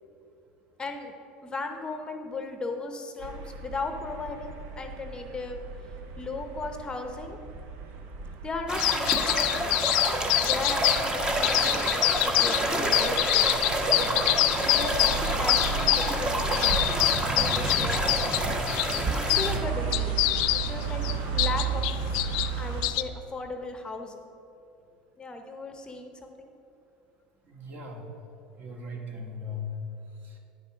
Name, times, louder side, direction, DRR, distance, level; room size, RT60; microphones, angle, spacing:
voice 1, 0.8-1.1 1.4-5.6 6.2-7.4 8.4-9.9 10.4-13.6 14.7-15.0 15.4-16.9 17.2-18.1 19.1-21.0 21.3-21.9 22.6-24.2 25.2-26.5, left 3 dB, 20° left, 5 dB, 0.8 m, -36 dB
sound 1, 3.2-22.9, right 5 dB, 65° right, 0.9 m, -35 dB
sound 2, 8.7-19.6, right 1 dB, 20° right, 1.1 m, -29 dB
sound 3, 8.8-11.1 11.4-12.6 12.9-19.5 19.9-23.0, left 16 dB, 75° left, 0.3 m, -26 dB
voice 2, 27.4-28.1 28.6-29.8 30.2-30.4, left 3 dB, 45° right, 1 dB, 1.7 m, -38 dB
9.5 x 5.4 x 5.9 m, 2.7 s
supercardioid pair, 105°, 4 cm